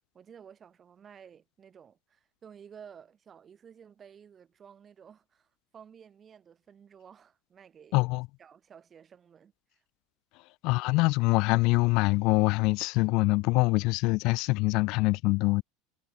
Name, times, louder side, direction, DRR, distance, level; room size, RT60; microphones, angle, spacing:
voice 1, 0.1-8.1 8.4-9.8, right 7 dB, 30° right, 4.8 m, -53 dB
voice 2, 7.9-8.3 10.6-15.6, left 24 dB, 60° left, 0.5 m, -24 dB
supercardioid pair, 110°, 0 cm